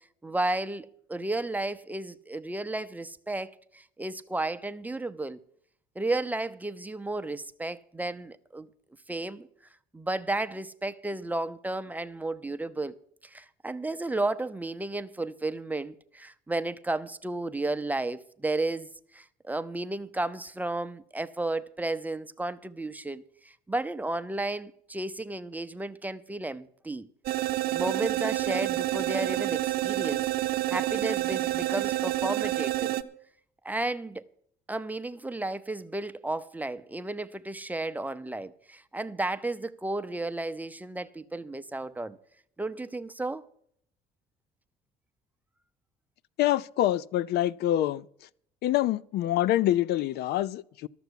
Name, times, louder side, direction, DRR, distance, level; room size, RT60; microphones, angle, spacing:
voice 1, 0.2-5.4 6.0-8.7 9.1-9.5 9.9-12.9 13.2-27.1 27.7-30.3 30.7-33.0 33.6-34.3 34.7-42.2 42.6-43.4, right 2 dB, 10° right, 0.6 m, -33 dB
sound 1, 27.3-33.0, right 15 dB, 70° right, 0.8 m, -28 dB
voice 2, 46.4-48.1 48.6-50.9, left 13 dB, 70° left, 0.4 m, -26 dB
13.0 x 6.9 x 8.0 m
cardioid pair, 110°, 17 cm